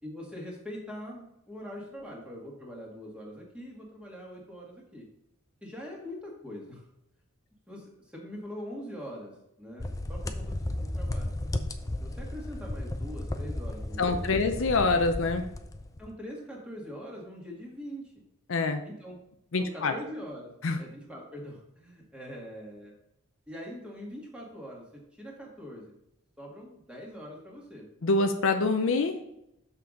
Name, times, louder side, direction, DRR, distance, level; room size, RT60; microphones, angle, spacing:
voice 1, 0.0-5.1 5.6-6.8 7.7-11.4 12.0-14.4 16.0-18.2 18.8-19.2 19.6-23.0 23.5-25.9 26.4-27.9, equal, 5° right, -2 dB, 1.8 m, -43 dB
sound 1, 9.8-16.1, left 1 dB, 15° left, 0.4 m, -34 dB
voice 2, 14.0-15.5 18.5-18.8 19.5-19.9 20.6-20.8 28.0-29.2, left 3 dB, 60° left, 6 dB, 0.6 m, -25 dB
6.8 x 5.8 x 3.8 m, 0.80 s
head